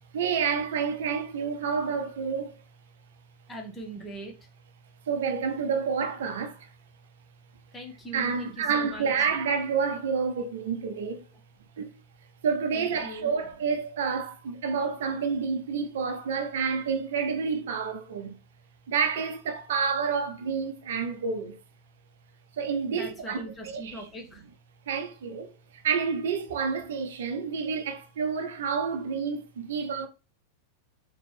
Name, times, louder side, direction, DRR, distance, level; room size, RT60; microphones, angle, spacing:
voice 1, 0.1-2.6 5.1-6.7 8.1-11.3 11.8-12.0 12.4-18.4 18.9-21.6 22.5-24.1 24.9-30.1, right 6 dB, 60° right, 0.6 m, -29 dB
voice 2, 3.5-4.4 7.7-9.1 12.7-13.4 22.9-24.4, right 1 dB, 15° left, 1.0 m, -41 dB
4.1 x 3.1 x 3.3 m
figure-of-eight pair, 90°, 0 cm